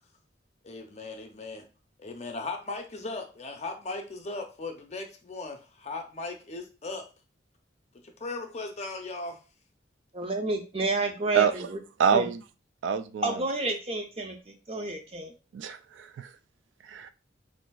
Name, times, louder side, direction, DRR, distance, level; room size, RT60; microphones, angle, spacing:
voice 1, 0.6-1.7 2.0-7.1 8.2-9.4, left 3 dB, 35° left, 4 dB, 0.6 m, -37 dB
voice 2, 10.1-11.8 12.1-12.3 13.2-15.3, right 2 dB, 35° right, 4 dB, 0.5 m, -30 dB
voice 3, 12.0-12.4 12.8-13.4 15.5-16.3 16.8-17.1, right 7 dB, 85° right, 11 dB, 0.3 m, -26 dB
3.9 x 2.6 x 2.2 m, 0.33 s
head